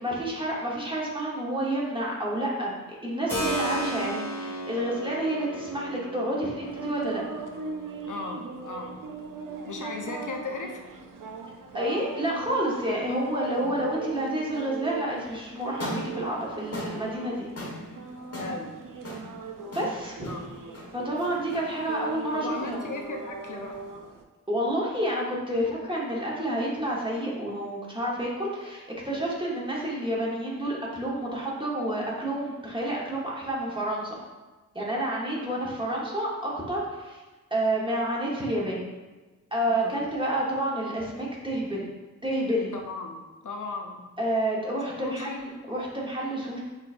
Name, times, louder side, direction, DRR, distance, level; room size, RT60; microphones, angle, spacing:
voice 1, 0.0-2.7 3.0-7.2 11.7-17.5 19.7-20.3 20.9-22.8 24.5-34.2 34.7-37.2 37.5-38.8 39.5-41.8 42.2-42.7 44.2-46.6, right 1 dB, 15° right, -4 dB, 1.1 m, -29 dB
Keyboard (musical), 3.3-11.9, right 1 dB, 10° left, 1.4 m, -37 dB
sound 1, 6.6-24.2, right 5 dB, 85° right, 0.5 m, -40 dB
voice 2, 8.1-9.0 9.7-10.8 13.6-13.8 18.4-18.8 20.2-20.5 22.4-23.9 35.6-35.7 39.7-40.1 42.7-44.1 45.0-45.5, left 3 dB, 70° left, 2 dB, 0.6 m, -37 dB
sound 2, 15.7-23.9, left 1 dB, 50° left, 1.2 m, -41 dB
6.4 x 3.1 x 2.5 m, 1.2 s
wide cardioid pair, 95°, 32 cm